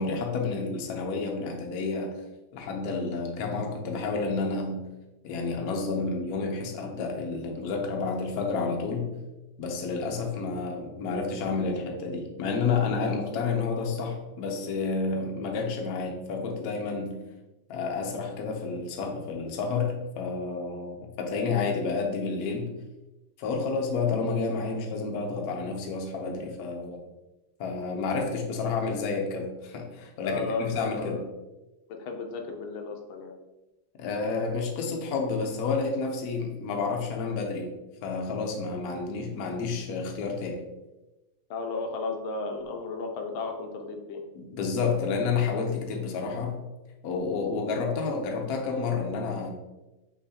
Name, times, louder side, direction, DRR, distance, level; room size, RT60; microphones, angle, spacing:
voice 1, 0.0-2.1 2.5-4.9 5.2-9.2 9.6-17.2 17.7-22.8 23.4-27.0 27.6-31.3 34.0-37.7 38.0-40.6 44.3-46.6 47.0-49.5, left 4 dB, 65° left, 1 dB, 1.0 m, -30 dB
voice 2, 30.2-31.3 31.9-33.4 41.5-44.2, left 3 dB, 80° left, 3 dB, 1.4 m, -34 dB
6.0 x 3.1 x 2.8 m, 1.0 s
omnidirectional pair, 2.2 m